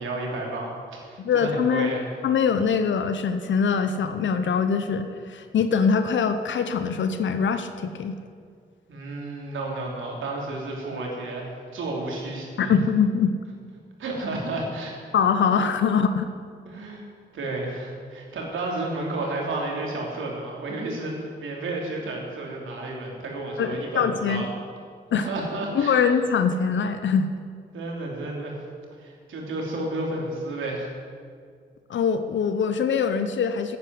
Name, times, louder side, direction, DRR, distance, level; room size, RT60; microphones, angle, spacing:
voice 1, 0.0-2.0 8.9-12.8 14.0-15.0 16.6-17.0 17.3-24.4 25.1-26.0 27.7-28.6 29.0-30.9, right 2 dB, 80° right, -1 dB, 3.2 m, -32 dB
voice 2, 1.2-1.9 2.2-8.2 12.6-13.3 15.1-16.3 23.6-24.5 25.1-25.3 25.7-27.3 31.9-33.8, left 6 dB, 70° left, 9 dB, 0.9 m, -23 dB
10.0 x 9.7 x 9.5 m, 2.1 s
supercardioid pair, 50°, 20 cm